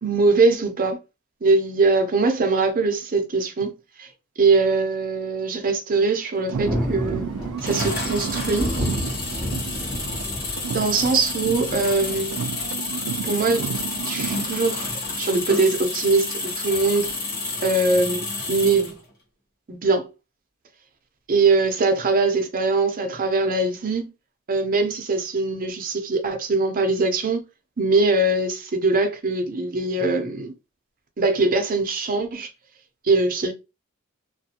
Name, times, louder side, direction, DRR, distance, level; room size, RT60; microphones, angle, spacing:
voice 1, 0.0-1.0 1.4-3.7 4.0-4.1 4.4-7.3 7.6-8.7 10.7-12.4 13.2-13.7 14.0-14.9 15.2-17.1 17.6-19.0 19.7-20.1 21.3-24.1 24.5-27.4 27.8-30.5 31.2-32.5 33.0-33.5, right 3 dB, 40° right, 0.6 m, -22 dB
sound 1, 6.4-10.3 10.6-14.5, right 7 dB, 85° right, 0.3 m, -32 dB
Thunder, 6.5-12.3, equal, 20° left, 1.1 m, -31 dB
sound 2, 7.6-19.0, left 3 dB, 45° left, 1.1 m, -30 dB
2.5 x 2.3 x 2.7 m
head